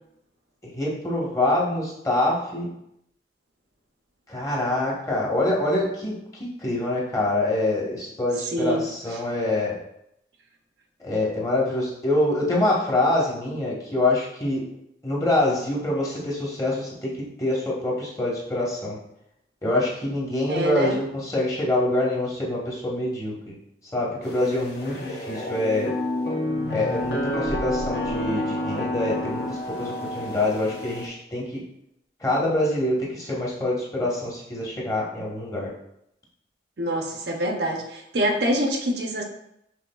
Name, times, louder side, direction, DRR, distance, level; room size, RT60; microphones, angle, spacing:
voice 1, 0.6-2.7 4.3-6.1 6.4-9.8 11.0-14.6 15.0-17.1 17.4-19.0 19.6-23.5 23.9-25.9 26.7-31.6 32.2-35.7, left 1 dB, 20° left, -4 dB, 1.0 m, -25 dB
voice 2, 8.5-8.9 9.1-9.2 20.5-21.0 36.8-39.2, right 1 dB, 60° right, 2 dB, 0.6 m, -25 dB
sound 1, 24.2-31.1, left 1 dB, 55° left, 0.8 m, -29 dB
6.0 x 3.6 x 2.3 m, 0.79 s
head